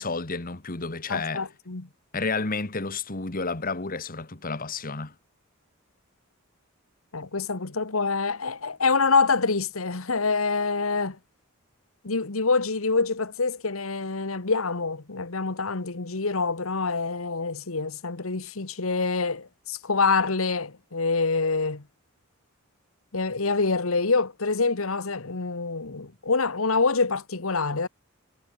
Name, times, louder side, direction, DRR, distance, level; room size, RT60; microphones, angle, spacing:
voice 1, 0.0-1.4 2.1-5.1, left 4 dB, 45° left, 1.7 m, -31 dB
voice 2, 1.1-1.9 7.1-11.2 12.0-21.8 23.1-27.9, left 4 dB, 80° left, 1.5 m, -26 dB
head